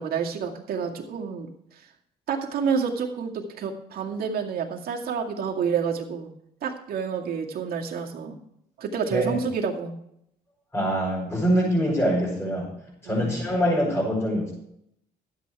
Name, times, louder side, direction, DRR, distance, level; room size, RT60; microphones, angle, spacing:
voice 1, 0.0-1.9 2.3-6.3 6.6-8.4 8.8-9.9 13.0-13.3, right 6 dB, 65° right, 1 dB, 2.1 m, -29 dB
voice 2, 10.7-12.7 13.0-14.5, equal, 15° left, -7 dB, 6.1 m, -24 dB
12.5 x 9.0 x 4.8 m, 0.75 s
cardioid pair, 110°, 17 cm